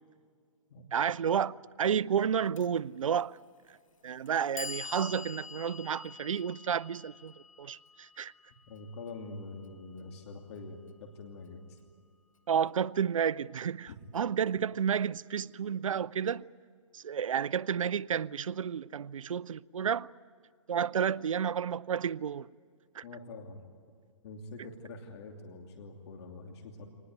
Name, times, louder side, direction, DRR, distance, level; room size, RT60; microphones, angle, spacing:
voice 1, 0.9-3.4 4.0-7.3 7.6-8.3 12.5-16.4 16.9-20.1 20.7-22.5 23.0-23.1, right 8 dB, 80° right, 0.6 m, -31 dB
Clock, 2.6-2.7 3.6-3.7 4.3-10.3, left 4 dB, 85° left, 1.5 m, -46 dB
voice 2, 8.7-11.8 13.9-14.0 23.0-23.6 24.2-26.9, left 3 dB, 55° left, 2.8 m, -45 dB
25.0 x 19.5 x 9.3 m
hypercardioid pair, 135°, 17 cm